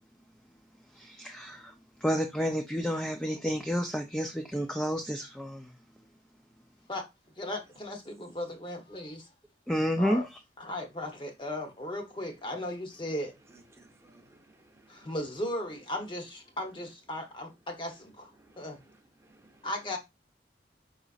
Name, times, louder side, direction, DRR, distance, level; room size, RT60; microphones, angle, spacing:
voice 1, 1.0-1.7 2.0-5.6 9.7-10.2, equal, 5° left, 0.4 m, -30 dB
voice 2, 7.4-9.3 10.0-10.3 10.6-13.4 14.9-18.3 18.6-18.8 19.6-20.0, left 1 dB, 25° left, 0.9 m, -36 dB
voice 3, 13.7-15.1 18.4-18.7 19.2-19.7, right 2 dB, 15° right, 0.8 m, -60 dB
5.0 x 3.9 x 2.4 m
head